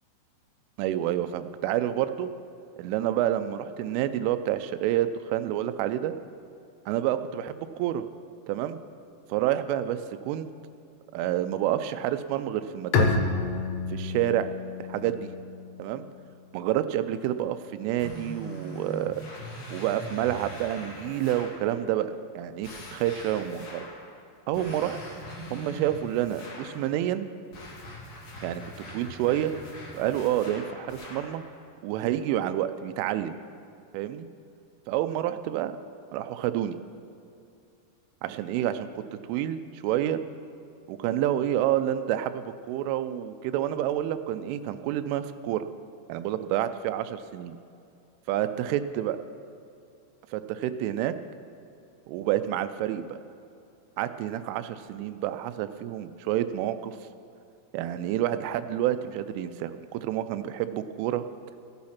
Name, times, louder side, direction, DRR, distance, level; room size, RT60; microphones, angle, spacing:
voice 1, 0.8-2.3 2.8-6.1 6.9-8.0 8.5-8.8 9.3-10.5 11.1-13.2 13.9-14.5 14.9-15.3 15.8-16.1 16.5-19.1 19.7-23.9 24.5-25.0 25.5-27.3 28.4-28.6 28.9-29.5 29.9-31.4 31.8-33.4 33.9-34.3 34.9-35.7 36.1-36.8 38.2-39.0 39.3-40.2 40.9-45.6 46.1-47.6 48.3-49.2 50.3-51.1 52.1-53.2 54.0-57.0 57.7-61.2, right 12 dB, 85° right, 11 dB, 3.1 m, -28 dB
Bowed string instrument, 12.9-16.5, left 5 dB, 80° left, 3.4 m, -29 dB
sound 1, 18.0-21.6 22.6-24.0 24.5-26.8 27.5-31.4, left 1 dB, 45° left, 2.9 m, -42 dB
15.5 x 10.5 x 5.8 m, 2.5 s
omnidirectional pair, 5.6 m